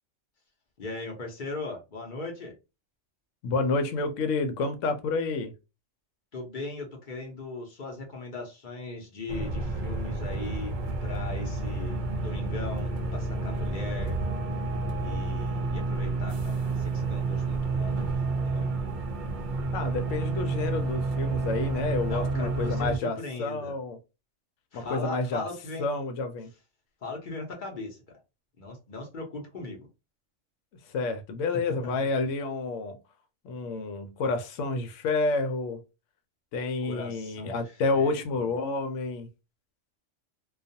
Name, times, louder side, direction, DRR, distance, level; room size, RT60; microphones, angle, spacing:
voice 1, 0.8-2.6 6.3-10.8 11.0-14.2 15.0-18.7 22.1-23.7 24.7-25.9 27.0-28.0 28.6-29.9 31.7-32.1 36.8-38.2, left 3 dB, 50° left, 0.8 m, -39 dB
voice 2, 3.4-5.5 19.7-24.0 24.7-25.4 25.8-26.5 30.9-33.0 33.4-35.8 36.5-39.3, left 3 dB, 85° left, 0.9 m, -29 dB
sound 1, 9.3-23.0, right 3 dB, 60° right, 0.5 m, -30 dB
2.4 x 2.2 x 2.6 m
omnidirectional pair, 1.3 m